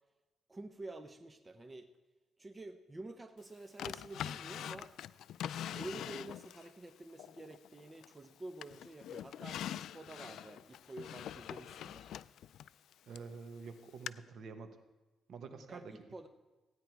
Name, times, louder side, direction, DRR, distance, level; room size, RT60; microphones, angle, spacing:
voice 1, 0.5-1.9 2.4-4.9 5.7-12.1 15.7-16.3, right 2 dB, 20° right, 8 dB, 0.7 m, -49 dB
Drawer open or close, 3.8-6.7 7.2-8.3 8.6-13.3 14.1-14.2, left 10 dB, 75° left, 0.3 m, -44 dB
voice 2, 13.1-14.8 15.3-15.9, right 5 dB, 65° right, 8 dB, 1.3 m, -48 dB
15.5 x 9.6 x 4.6 m, 1.2 s
cardioid pair, 105°, 0 cm